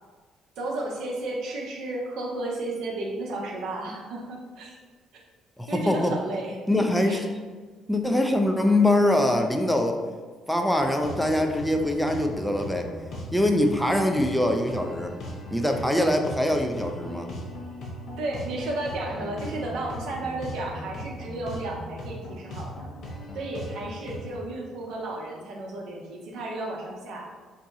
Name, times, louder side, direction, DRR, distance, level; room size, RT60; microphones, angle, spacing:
voice 1, 0.6-4.8 5.7-6.6 7.1-7.2 18.2-22.9 23.3-27.3, right 2 dB, 70° right, -1 dB, 0.6 m, -33 dB
voice 2, 5.6-6.1 6.7-7.2 7.9-10.0 10.5-12.9 13.3-15.1 15.5-17.3, left 1 dB, 5° left, 4 dB, 0.4 m, -23 dB
sound 1, 10.8-24.4, equal, 60° left, 0.7 m, -38 dB
2.7 x 2.2 x 3.9 m, 1.4 s
hypercardioid pair, 50°, 0 cm